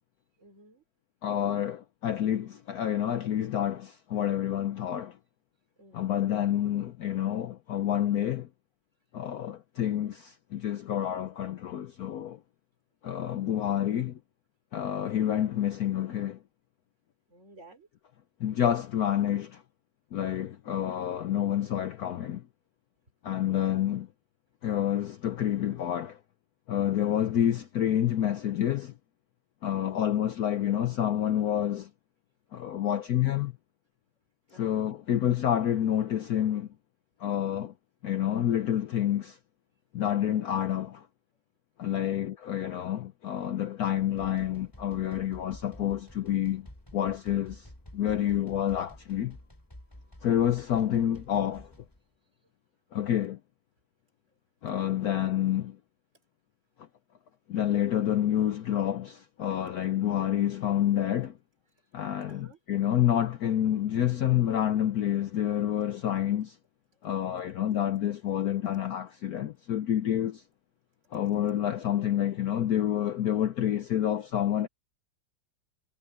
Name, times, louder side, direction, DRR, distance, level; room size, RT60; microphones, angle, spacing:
voice 1, 0.4-0.8 5.8-6.2 17.3-17.9 29.7-30.2 34.5-34.8 41.9-42.2 50.0-50.2 54.8-55.2 62.3-62.6, right 1 dB, 35° right, 4.1 m, -54 dB
voice 2, 1.2-5.2 5.9-8.5 9.1-12.4 13.0-14.2 14.7-16.4 18.4-19.6 20.1-22.4 23.2-24.1 24.6-26.2 26.7-28.9 29.6-31.9 32.5-33.5 34.5-36.7 37.2-37.7 38.0-39.4 39.9-41.1 41.8-46.7 46.9-49.4 50.2-51.7 52.9-53.4 54.6-55.8 57.5-61.3 61.9-66.6 67.0-70.4 71.1-74.7, left 11 dB, 65° left, 1.0 m, -28 dB
sound 1, 44.0-52.0, left 1 dB, 10° left, 4.2 m, -50 dB
omnidirectional pair, 2.1 m